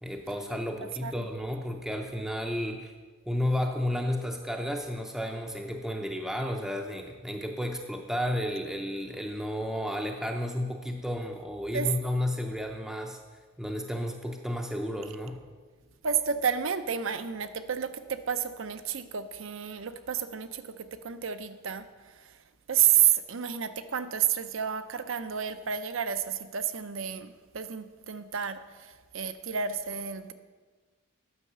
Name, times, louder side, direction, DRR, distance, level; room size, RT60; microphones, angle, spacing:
voice 1, 0.0-2.9 3.3-13.2 13.6-15.4, left 1 dB, ahead, 2 dB, 0.5 m, -32 dB
voice 2, 16.0-22.4 22.7-30.3, right 9 dB, 65° right, 11 dB, 0.6 m, -30 dB
9.6 x 6.3 x 6.7 m, 1.4 s
head